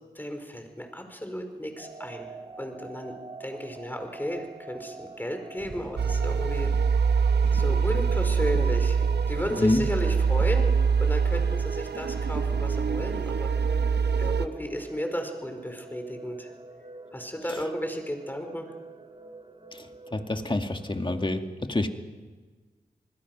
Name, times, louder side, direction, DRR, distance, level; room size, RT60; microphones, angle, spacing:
voice 1, 0.1-2.3 2.6-3.1 3.4-6.7 7.5-9.0 9.3-13.5 14.2-16.5 17.1-18.7, equal, 10° left, 5 dB, 4.8 m, -34 dB
sound 1, 1.8-21.3, right 2 dB, 30° right, 2.2 m, -46 dB
sound 2, 5.6-12.6, right 2 dB, 55° right, 4.9 m, -45 dB
sound 3, 6.0-14.5, right 5 dB, 85° right, 0.9 m, -24 dB
voice 2, 9.5-9.8 17.5-17.6 19.7-21.9, left 2 dB, 30° left, 6 dB, 2.1 m, -27 dB
28.0 x 20.5 x 6.1 m, 1.4 s
cardioid pair, 55°, 17 cm